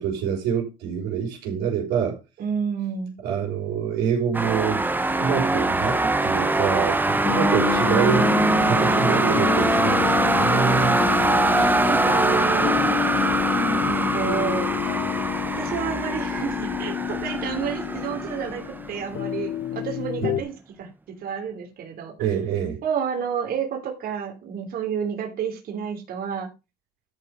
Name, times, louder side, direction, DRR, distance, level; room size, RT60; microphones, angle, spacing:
voice 1, 0.0-2.2 3.2-8.4 8.6-11.0 11.5-11.8 22.2-22.8, right 8 dB, 90° right, 5.1 m, -26 dB
voice 2, 2.4-3.2 7.2-8.1 11.9-12.8 13.8-14.7 15.4-20.9 21.2-22.1 22.8-26.5, right 7 dB, 60° right, 3.2 m, -30 dB
sound 1, 4.3-19.2, right 2 dB, 10° right, 1.0 m, -23 dB
sound 2, 7.2-20.4, left 12 dB, 55° left, 0.7 m, -28 dB
13.0 x 5.1 x 5.5 m
cardioid pair, 110°, 17 cm